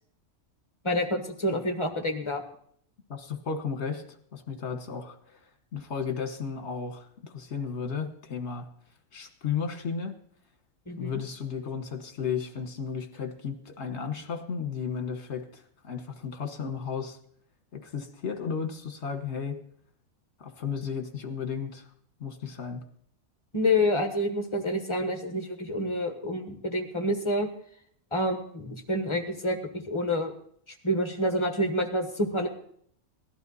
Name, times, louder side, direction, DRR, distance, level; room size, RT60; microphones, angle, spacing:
voice 1, 0.8-2.4 10.9-11.1 23.5-27.5 28.1-29.6 29.9-30.3 30.8-32.5, left 1 dB, 20° left, 5 dB, 1.4 m, -28 dB
voice 2, 3.1-4.0 4.3-8.7 9.1-10.2 11.0-17.2 17.7-19.6 20.4-21.8 22.2-22.8, left 6 dB, 55° left, 7 dB, 1.5 m, -34 dB
17.5 x 11.5 x 4.1 m, 0.63 s
omnidirectional pair, 1.4 m